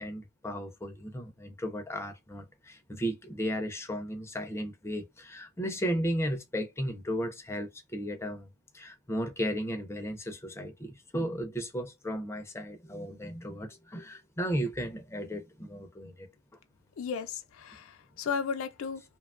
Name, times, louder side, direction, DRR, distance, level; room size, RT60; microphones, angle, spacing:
voice 1, 0.0-16.3, equal, 15° left, 0.4 m, -35 dB
voice 2, 17.0-19.0, left 6 dB, 70° left, 0.4 m, -34 dB
2.8 x 2.2 x 2.3 m
head